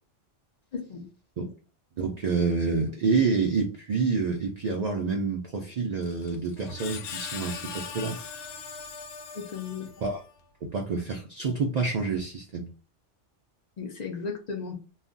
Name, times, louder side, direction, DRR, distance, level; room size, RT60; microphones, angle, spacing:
voice 1, 0.7-1.1 9.3-9.9 13.8-14.7, left 5 dB, 50° left, 0.5 m, -35 dB
voice 2, 2.0-8.2 10.0-10.2 10.6-12.7, right 4 dB, 90° right, 0.3 m, -28 dB
Screech, 6.0-10.3, left 6 dB, 85° left, 0.9 m, -40 dB
2.3 x 2.1 x 3.7 m
omnidirectional pair, 1.2 m